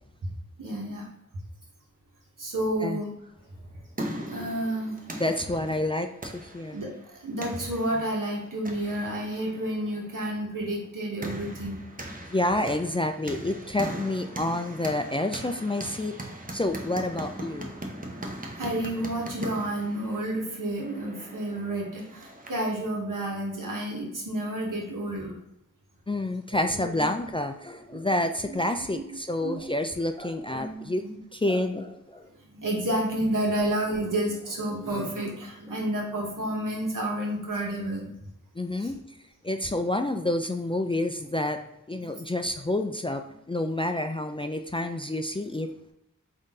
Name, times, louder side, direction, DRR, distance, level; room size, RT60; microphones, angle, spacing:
voice 1, 0.6-1.1 2.4-3.1 4.3-5.0 6.7-11.8 18.6-25.3 26.5-27.3 27.9-28.1 28.4-28.6 28.9-29.0 29.4-29.6 30.5-31.1 32.5-38.1 38.8-38.9 42.0-42.2, right 1 dB, 75° right, -2 dB, 1.3 m, -30 dB
sound 1, 3.5-22.8, right 1 dB, 25° right, 0.8 m, -40 dB
voice 2, 5.2-6.8 12.3-16.2 16.5-17.7 26.1-31.0 31.3-32.3 38.6-39.0 39.4-41.6 41.9-45.7, left 1 dB, 15° left, 6 dB, 0.3 m, -28 dB
3.7 x 2.7 x 3.7 m, 0.84 s
cardioid pair, 40°, 32 cm